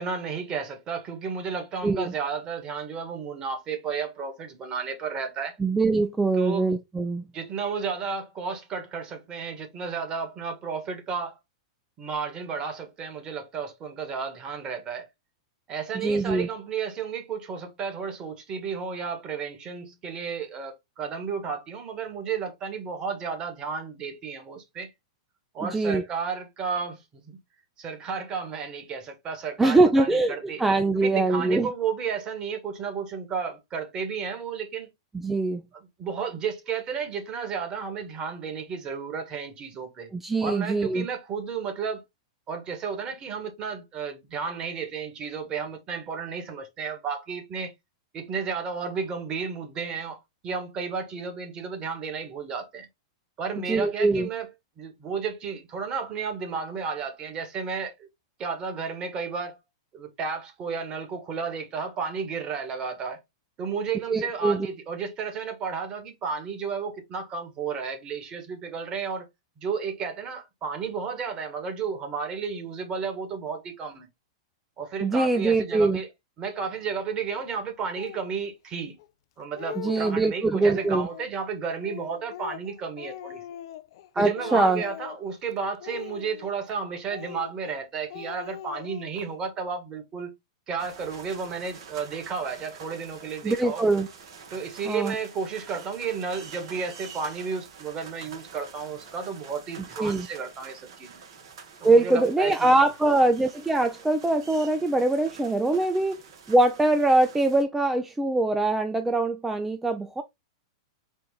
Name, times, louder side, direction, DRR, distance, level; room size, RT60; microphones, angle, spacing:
voice 1, 0.0-5.6 6.4-6.7 7.3-11.4 12.0-15.1 15.7-24.9 25.5-27.4 27.8-30.6 31.0-34.9 36.0-40.1 40.4-42.0 42.5-47.7 48.1-52.9 53.4-54.5 54.8-58.1 58.4-59.6 59.9-63.2 63.6-69.3 69.6-74.1 74.8-76.1 76.4-79.0 79.4-83.4 84.1-90.3 90.7-93.8 94.5-101.2 101.8-103.1, right 5 dB, 30° right, 1.6 m, -32 dB
voice 2, 5.6-7.2 16.0-16.5 25.6-26.0 29.6-30.3 30.6-31.7 35.1-35.6 40.1-41.1 53.7-54.3 64.1-64.7 75.0-76.0 79.8-81.1 84.2-84.8 93.4-94.1 94.9-95.1 100.0-100.3 101.8-106.2 106.5-110.2, right 2 dB, 10° right, 0.5 m, -23 dB
Speech, 77.9-78.3 79.0-79.1 79.4-80.3 80.7-81.3 81.8-84.1 84.4-85.3 85.8-86.7 87.1-87.8 88.1-89.3, left 11 dB, 65° left, 0.5 m, -41 dB
sound 1, 90.8-107.6, right 6 dB, 70° right, 1.4 m, -47 dB
4.4 x 2.5 x 3.9 m
hypercardioid pair, 120°, 3 cm